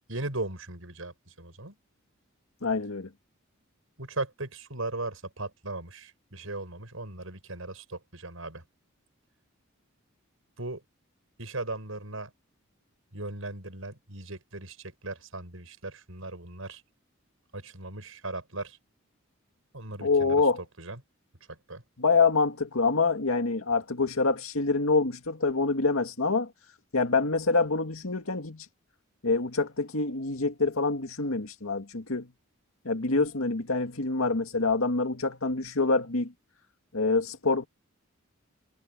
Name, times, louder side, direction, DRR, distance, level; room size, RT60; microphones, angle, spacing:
voice 1, 0.1-1.8 4.0-8.6 10.6-10.8 11.4-12.3 13.1-16.8 17.5-18.8 19.7-20.5 20.8-21.0 21.5-21.8, right 2 dB, 80° right, 5.9 m, -38 dB
voice 2, 2.6-3.1 20.0-20.6 22.0-26.5 26.9-28.7 29.2-32.3 32.9-36.3 36.9-37.7, left 3 dB, 85° left, 2.1 m, -26 dB
head